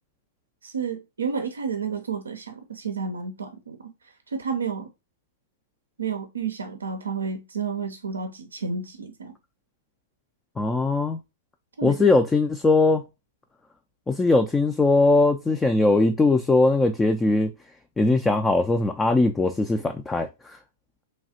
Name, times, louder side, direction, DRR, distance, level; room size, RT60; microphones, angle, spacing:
voice 1, 0.6-3.9 4.3-4.9 6.0-9.3 11.8-12.0, right 5 dB, 85° right, 0.5 m, -31 dB
voice 2, 10.6-11.2 11.8-13.0 14.1-17.5 18.0-20.3, left 3 dB, 10° left, 0.3 m, -20 dB
3.2 x 2.4 x 2.7 m
hypercardioid pair, 115°, 0 cm